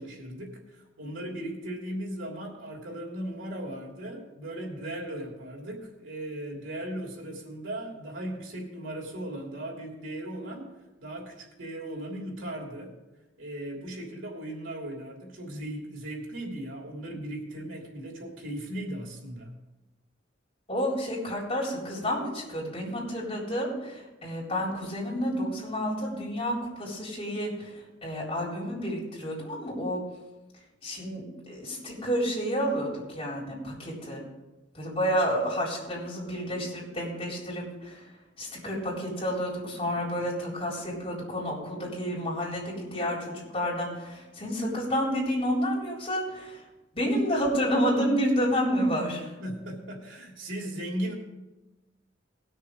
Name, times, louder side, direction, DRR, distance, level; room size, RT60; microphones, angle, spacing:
voice 1, 0.0-10.7 11.0-12.9 13.4-19.5 49.4-51.1, right 1 dB, 90° right, -1 dB, 3.1 m, -37 dB
voice 2, 20.7-30.0 30.8-34.2 34.7-38.0 38.4-46.6 46.9-49.3, equal, 30° left, -4 dB, 3.9 m, -30 dB
19.5 x 6.6 x 4.9 m, 1.1 s
head